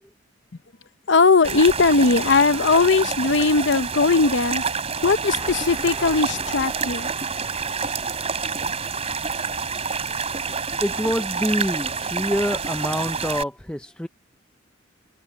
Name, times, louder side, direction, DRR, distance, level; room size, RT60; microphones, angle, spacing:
voice 1, 1.1-4.6 5.0-7.1, left 4 dB, 65° left, 0.8 m, -19 dB
sound 1, 1.4-13.4, right 5 dB, 30° right, 3.3 m, -28 dB
sound 2, 5.0-10.2 10.5-10.6, right 1 dB, 10° right, 2.4 m, -43 dB
voice 2, 10.1-14.1, equal, 5° left, 0.7 m, -27 dB
head